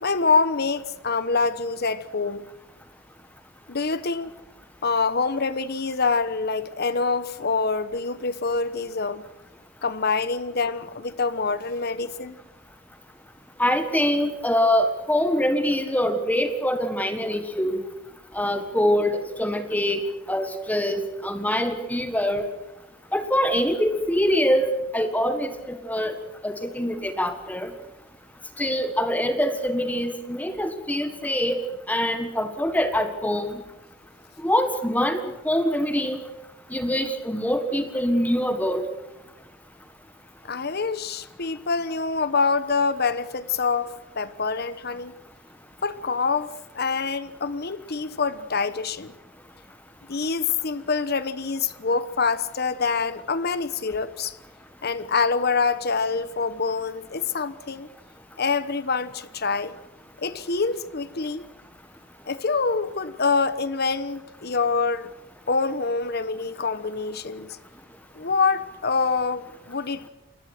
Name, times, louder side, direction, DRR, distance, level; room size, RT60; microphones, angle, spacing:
voice 1, 0.0-2.4 3.7-4.3 4.8-9.3 9.8-12.4 40.4-45.1 45.8-49.1 50.1-54.4 54.8-57.9 58.4-59.8 60.2-61.5 62.3-65.1 65.5-67.6 68.1-70.1, left 4 dB, 55° left, 1.1 m, -25 dB
voice 2, 13.6-17.8 18.3-20.0 20.3-22.5 23.1-26.2 26.4-27.7 28.6-31.6 31.9-33.6 34.4-36.2 36.7-38.8, equal, 10° left, 1.6 m, -24 dB
29.0 x 20.5 x 6.1 m
head